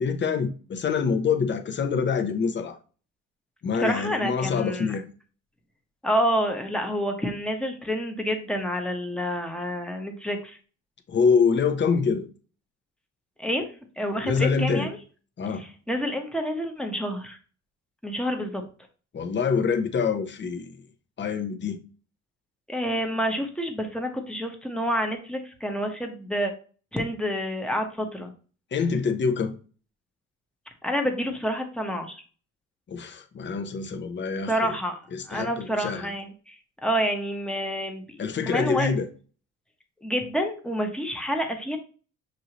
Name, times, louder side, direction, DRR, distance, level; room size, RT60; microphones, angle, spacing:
voice 1, 0.0-2.8 3.6-5.1 11.1-12.2 14.2-14.9 15.4-15.6 19.1-20.8 21.2-21.8 28.7-29.6 32.9-34.7 35.1-36.1 38.2-39.0, left 5 dB, 40° left, 0.7 m, -25 dB
voice 2, 3.8-5.0 6.0-10.6 13.4-13.6 14.0-15.0 15.6-17.4 18.0-18.6 22.7-26.5 26.9-28.3 30.8-32.2 34.5-35.0 35.3-38.2 38.5-38.9 40.0-41.8, equal, 5° left, 1.0 m, -28 dB
6.3 x 2.7 x 2.9 m
cardioid pair, 90°, 30 cm